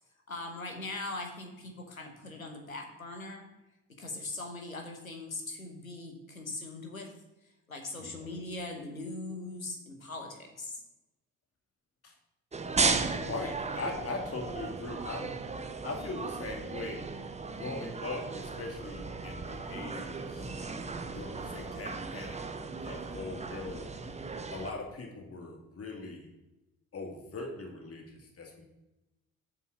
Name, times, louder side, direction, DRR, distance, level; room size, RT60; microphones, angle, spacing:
voice 1, 0.3-3.5 4.0-7.1 7.7-10.8, left 2 dB, 90° left, 3 dB, 1.0 m, -40 dB
voice 2, 8.0-8.4 12.0-12.1 13.1-15.4 15.8-17.1 17.6-20.8 21.1-23.9 24.5-26.3 26.9-28.6, left 3 dB, 35° left, 2 dB, 2.2 m, -40 dB
sound 1, 12.5-24.7, right 4 dB, 15° right, 0.9 m, -36 dB
7.8 x 5.3 x 6.0 m, 0.98 s
figure-of-eight pair, 45°, 40 cm